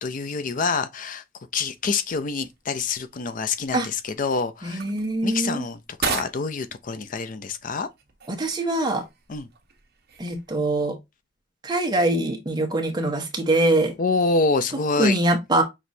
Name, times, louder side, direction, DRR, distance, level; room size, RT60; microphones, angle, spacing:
voice 1, 0.0-1.2 1.5-4.8 5.2-7.9 9.3-9.5 14.0-15.2, left 4 dB, 45° left, 0.5 m, -26 dB
sound 1, 1.7-10.9, right 5 dB, 55° right, 1.1 m, -38 dB
voice 2, 4.6-5.6 8.3-9.0 10.2-11.0 11.6-13.9 15.0-15.6, right 2 dB, 20° right, 1.1 m, -23 dB
6.0 x 3.1 x 2.6 m
head